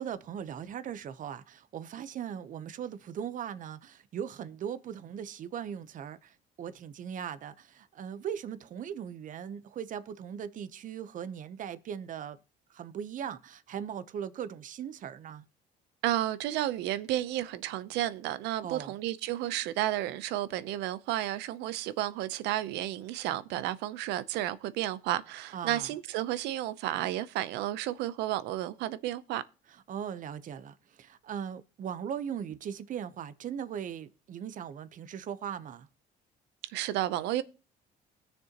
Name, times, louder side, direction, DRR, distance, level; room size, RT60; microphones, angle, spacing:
voice 1, 0.0-12.4 12.7-15.4 18.6-18.9 25.5-25.9 29.7-35.9, right 8 dB, 50° right, 0.8 m, -39 dB
voice 2, 16.0-29.4 36.7-37.4, right 14 dB, 90° right, 0.7 m, -32 dB
19.5 x 6.8 x 2.9 m
cardioid pair, 110°, 17 cm